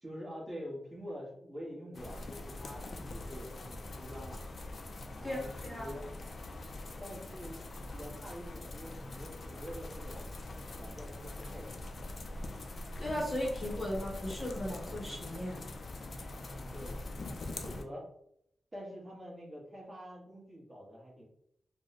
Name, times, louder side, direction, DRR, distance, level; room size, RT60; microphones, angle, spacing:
voice 1, 0.0-4.4 5.2-6.1 7.0-7.6 7.9-10.3 10.7-11.7 16.3-17.2 17.6-18.1 18.7-21.2, equal, 25° right, -4 dB, 1.2 m, -46 dB
sound 1, 1.9-17.8, left 2 dB, 45° left, 0.4 m, -43 dB
voice 2, 5.2-5.9 13.0-15.6, left 1 dB, 15° left, -4 dB, 0.9 m, -37 dB
3.0 x 2.1 x 3.9 m, 0.72 s
wide cardioid pair, 135°, 0 cm